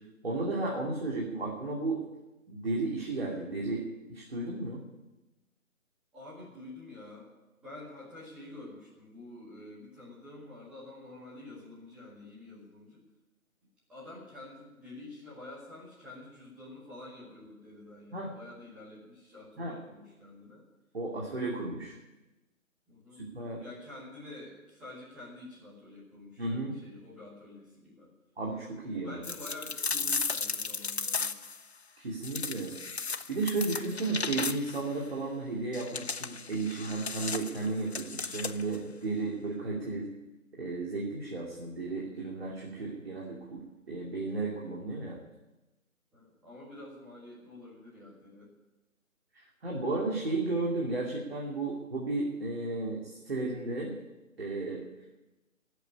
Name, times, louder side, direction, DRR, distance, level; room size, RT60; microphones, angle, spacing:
voice 1, 0.2-2.0 2.5-4.8 18.1-18.3 19.6-19.7 20.9-21.9 23.2-23.6 26.4-26.7 28.4-29.2 32.0-32.8 33.1-40.1 40.6-45.2 49.3-53.9 54.4-54.8, right 3 dB, 45° right, -3 dB, 2.8 m, -34 dB
voice 2, 6.1-7.3 7.6-13.0 13.9-20.6 22.9-23.2 23.6-28.1 28.9-31.3 46.1-48.5, left 2 dB, ahead, -10 dB, 1.8 m, -48 dB
Ice Cracking Sequence, 29.2-31.6 32.2-34.9 35.7-38.8, left 4 dB, 50° left, 0.6 m, -35 dB
15.0 x 8.1 x 9.8 m, 1.0 s
figure-of-eight pair, 170°, 43 cm